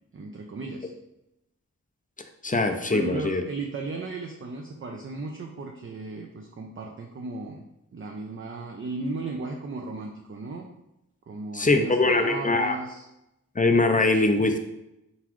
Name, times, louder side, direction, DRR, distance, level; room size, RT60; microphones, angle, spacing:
voice 1, 0.1-0.9 2.9-7.6 7.9-10.7 11.3-13.1, right 3 dB, 40° right, 1 dB, 0.5 m, -35 dB
voice 2, 2.4-3.4 11.5-12.8 13.6-14.6, left 2 dB, 25° left, 6 dB, 0.4 m, -22 dB
4.0 x 3.5 x 3.0 m, 0.87 s
cardioid pair, 60°, 34 cm